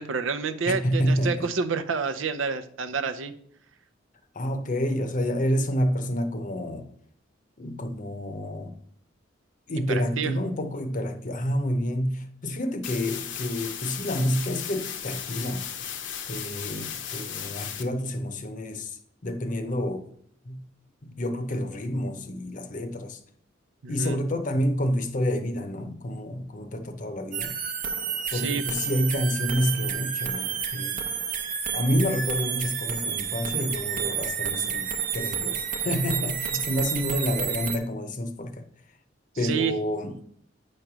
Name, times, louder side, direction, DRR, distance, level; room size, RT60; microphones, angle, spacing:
voice 1, 0.0-3.3 9.9-10.3 23.8-24.2 28.3-28.6 39.4-39.7, right 5 dB, 90° right, 0.6 m, -29 dB
voice 2, 0.7-1.5 4.3-6.9 7.6-8.8 9.7-15.7 16.3-19.0 19.2-20.1 20.5-20.7 21.0-23.2 23.9-27.5 28.3-31.0 31.7-38.6 39.4-40.2, equal, 40° left, 0.7 m, -28 dB
sound 1, 12.8-17.8, left 8 dB, 70° left, 0.8 m, -35 dB
sound 2, 27.3-37.8, right 7 dB, 45° right, 0.8 m, -30 dB
9.0 x 3.2 x 6.0 m
head